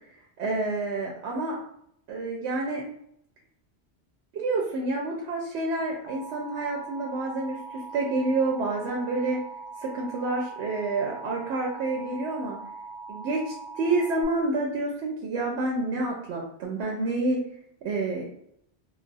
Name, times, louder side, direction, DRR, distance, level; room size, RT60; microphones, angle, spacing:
voice 1, 0.4-1.6 2.1-2.8 4.3-9.4 9.8-12.6 13.1-17.4 17.8-18.4, right 2 dB, 85° right, -1 dB, 0.8 m, -28 dB
Alarm, 6.1-14.2, right 3 dB, 60° left, 0.3 m, -41 dB
2.3 x 2.1 x 3.8 m, 0.73 s
omnidirectional pair, 1.1 m